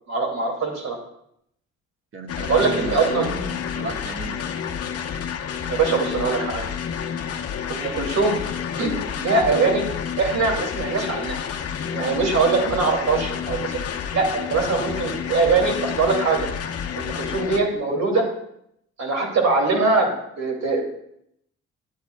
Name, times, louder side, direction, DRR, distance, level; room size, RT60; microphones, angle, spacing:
voice 1, 0.1-1.0 2.5-3.3 5.7-6.7 7.7-8.4 8.8-9.8 10.2-11.4 11.9-13.8 14.1-16.5 17.0-18.3 19.0-20.9, right 4 dB, 60° right, 1 dB, 2.5 m, -22 dB
voice 2, 2.1-4.5, right 3 dB, 45° right, 3 dB, 1.4 m, -34 dB
sound 1, 2.3-17.6, left 8 dB, 55° left, 0.9 m, -29 dB
12.0 x 9.3 x 2.2 m, 0.74 s
cardioid pair, 90°, 30 cm